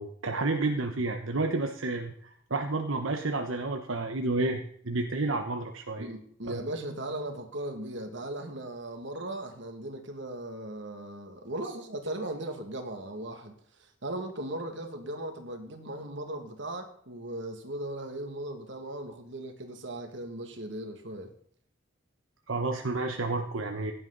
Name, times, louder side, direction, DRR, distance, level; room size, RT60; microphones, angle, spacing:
voice 1, 0.0-6.1 6.4-6.6 22.5-23.9, right 2 dB, 85° right, 4 dB, 1.2 m, -30 dB
voice 2, 6.0-13.6 14.0-21.3, right 1 dB, 65° right, 5 dB, 2.3 m, -38 dB
16.0 x 11.0 x 4.1 m, 0.63 s
head